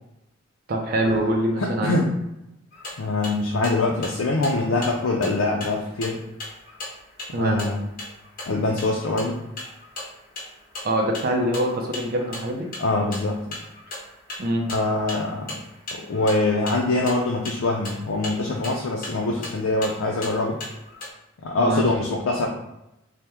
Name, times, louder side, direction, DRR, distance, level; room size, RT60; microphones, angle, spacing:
voice 1, 0.7-2.0 7.3-7.6 10.8-12.7 14.4-14.7 21.6-21.8, right 1 dB, 50° right, 0 dB, 0.4 m, -24 dB
voice 2, 1.6-2.1 3.0-6.2 7.4-7.8 8.5-9.4 12.8-13.6 14.7-15.5 15.9-20.6 21.4-22.5, left 2 dB, 85° left, 0 dB, 0.4 m, -24 dB
sound 1, 2.7-21.1, left 2 dB, 45° left, 0.9 m, -39 dB
2.9 x 2.1 x 3.4 m, 0.89 s
head